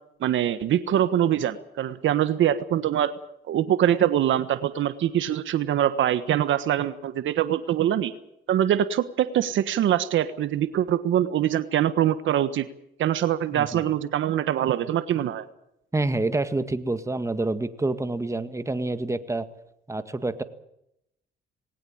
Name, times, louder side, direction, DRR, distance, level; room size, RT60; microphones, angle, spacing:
voice 1, 0.2-3.1 3.5-8.1 8.5-12.7 13.0-15.5, right 11 dB, 75° right, 13 dB, 1.4 m, -23 dB
voice 2, 15.9-19.5 19.9-20.4, right 2 dB, 15° right, 10 dB, 1.9 m, -27 dB
20.5 x 18.5 x 8.9 m, 0.78 s
cardioid pair, 90°, 20 cm